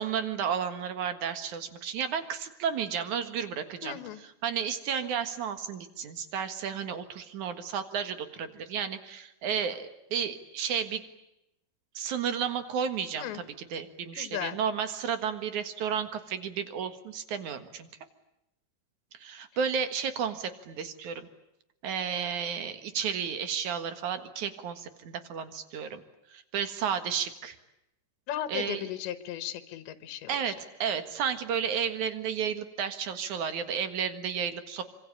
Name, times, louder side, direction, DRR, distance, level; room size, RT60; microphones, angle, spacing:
voice 1, 0.0-11.0 11.9-13.4 13.7-17.9 19.1-21.3 21.8-26.0 26.3-27.6 28.5-28.9 30.3-34.8, right 7 dB, 55° right, 9 dB, 2.5 m, -32 dB
voice 2, 3.8-4.2 13.2-13.4 14.1-14.6 28.3-30.4, left 11 dB, 90° left, 11 dB, 3.5 m, -36 dB
25.5 x 25.5 x 8.6 m, 0.87 s
omnidirectional pair, 5.0 m